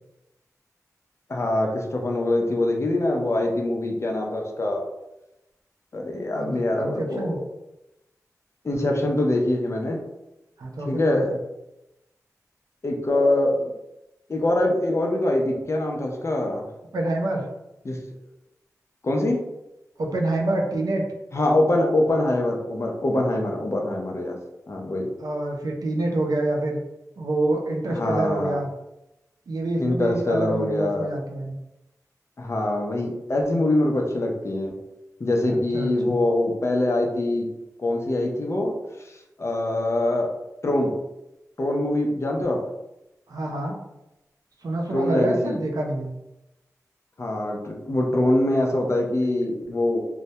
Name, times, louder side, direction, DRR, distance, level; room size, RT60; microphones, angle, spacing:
voice 1, 1.3-4.8 5.9-7.4 8.6-10.0 10.9-11.3 12.8-13.7 14.3-16.7 17.8-18.0 19.0-19.4 21.3-24.4 24.7-25.1 27.9-28.6 29.8-31.1 32.4-34.7 35.2-37.5 37.8-38.7 39.0-40.3 40.6-40.9 41.6-42.6 44.9-45.6 47.2-50.1, left 1 dB, 45° left, 1 dB, 0.5 m, -24 dB
voice 2, 6.3-7.4 10.6-11.2 16.9-17.4 20.0-21.0 25.2-26.8 27.2-28.7 29.5-31.5 35.5-36.2 43.3-43.8 44.6-46.1, right 2 dB, 80° right, 1 dB, 0.4 m, -27 dB
2.1 x 2.1 x 2.7 m, 0.93 s
wide cardioid pair, 55°, 6 cm